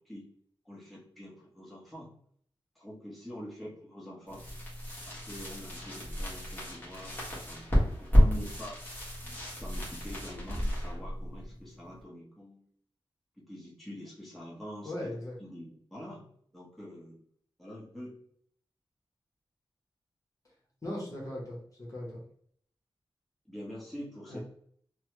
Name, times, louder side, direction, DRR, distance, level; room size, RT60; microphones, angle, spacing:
voice 1, 0.6-2.1 2.7-4.4 5.1-8.8 9.5-12.7 13.5-15.1 15.4-16.2 16.5-17.2 17.6-18.2 23.5-24.4, equal, ahead, -6 dB, 1.0 m, -45 dB
sound 1, 4.3-12.0, equal, 20° left, 1.3 m, -30 dB
voice 2, 14.8-15.4 20.8-22.2 24.3-24.4, left 1 dB, 40° left, -4 dB, 1.0 m, -38 dB
3.1 x 2.1 x 3.0 m, 0.63 s
wide cardioid pair, 115°, 9 cm